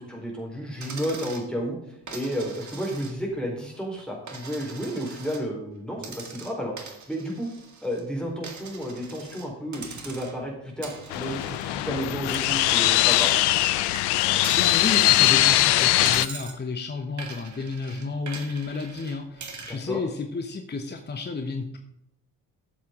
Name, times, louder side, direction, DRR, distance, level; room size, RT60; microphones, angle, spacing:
voice 1, 0.0-6.7 7.1-7.5 7.8-13.3 19.7-20.0, equal, ahead, -1 dB, 3.9 m, -32 dB
Coin (dropping), 0.8-1.5 2.1-3.4 3.7-5.4 6.0-8.0 8.4-9.5 9.7-10.5 10.8-13.7 13.9-15.6 16.0-16.6 17.2-19.8, right 4 dB, 35° right, 1.9 m, -42 dB
sound 1, 11.1-16.3, left 16 dB, 55° left, 0.6 m, -21 dB
voice 2, 14.5-21.8, left 4 dB, 20° left, 6 dB, 1.1 m, -31 dB
14.5 x 7.3 x 3.7 m, 0.79 s
figure-of-eight pair, 40°, 48 cm